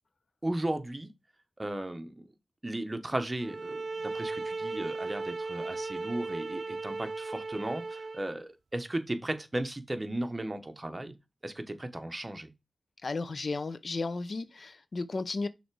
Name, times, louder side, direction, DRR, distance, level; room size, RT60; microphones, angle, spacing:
voice 1, 0.4-1.1 1.6-2.3 2.6-11.1 11.4-12.5, right 1 dB, 25° right, 1.1 m, -35 dB
sound 1, 3.4-8.4, right 3 dB, 65° right, 0.5 m, -36 dB
voice 2, 13.0-15.5, left 3 dB, 65° left, 0.7 m, -34 dB
6.3 x 3.4 x 4.6 m
wide cardioid pair, 65°, 0 cm